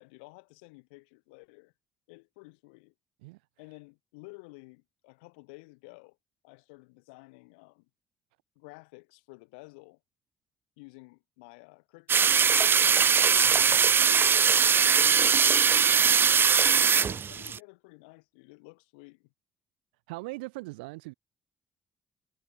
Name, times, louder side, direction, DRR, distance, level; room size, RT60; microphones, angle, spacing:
voice 1, 0.0-1.7 2.1-2.9 3.6-6.2 6.4-7.9 8.6-10.0 10.8-12.3 12.6-13.8 14.6-19.3, left 29 dB, 75° left, 6.0 m, -52 dB
sound 1, 12.1-17.6, right 6 dB, 45° right, 1.3 m, -21 dB
voice 2, 20.1-21.1, right 24 dB, 75° right, 2.1 m, -39 dB
figure-of-eight pair, 40°, 5 cm